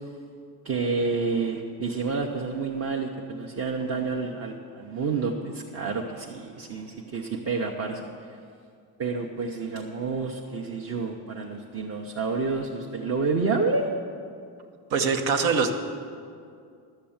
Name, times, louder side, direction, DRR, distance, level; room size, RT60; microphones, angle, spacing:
voice 1, 0.6-8.4 9.0-13.9, right 4 dB, 35° right, 1 dB, 0.7 m, -29 dB
voice 2, 14.9-15.7, right 5 dB, 85° right, 5 dB, 1.2 m, -23 dB
11.5 x 6.7 x 8.7 m, 2.3 s
cardioid pair, 155°, 45 cm